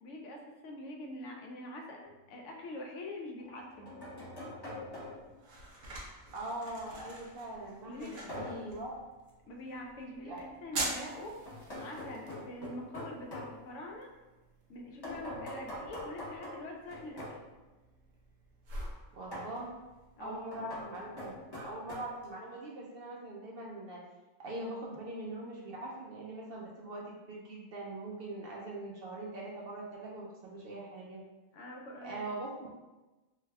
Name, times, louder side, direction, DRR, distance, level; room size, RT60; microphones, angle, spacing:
voice 1, 0.0-3.9 7.9-8.3 9.4-11.4 11.8-14.1 14.7-17.4 20.2-20.7 31.5-32.3, left 1 dB, 75° left, 1 dB, 0.9 m, -44 dB
sound 1, 2.0-2.2 3.4-5.4 8.3-8.8 11.5-13.5 15.0-17.4 19.3-19.6 20.5-21.9, left 1 dB, 20° left, 0.8 m, -43 dB
sound 2, 4.8-22.3, right 2 dB, 85° right, 1.1 m, -46 dB
voice 2, 6.3-8.9 10.2-10.4 19.1-19.7 20.2-24.0 24.4-31.2 32.0-32.7, right 2 dB, 60° right, -3 dB, 0.7 m, -42 dB
3.3 x 2.3 x 3.3 m, 1.1 s
omnidirectional pair, 1.3 m